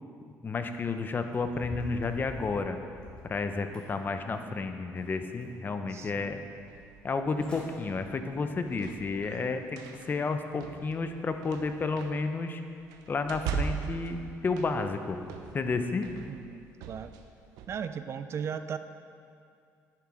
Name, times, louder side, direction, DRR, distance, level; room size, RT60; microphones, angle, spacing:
voice 1, 0.4-2.8 3.2-6.4 7.0-9.8 10.1-12.6 13.1-15.2 15.5-16.1, left 4 dB, 30° left, 8 dB, 0.7 m, -31 dB
sound 1, 1.3-3.3 3.7-4.6 5.0-5.8 6.2-6.3 7.1-7.2 7.4-7.7 8.2-8.4 8.9-9.0, left 1 dB, 15° left, 2.5 m, -46 dB
voice 2, 5.9-6.4 16.3-17.1 17.7-18.8, right 7 dB, 45° right, 10 dB, 0.4 m, -37 dB
sound 2, 6.2-17.7, right 7 dB, 90° right, 0.8 m, -41 dB
10.5 x 6.9 x 4.9 m, 2.4 s
cardioid pair, 105°, 6 cm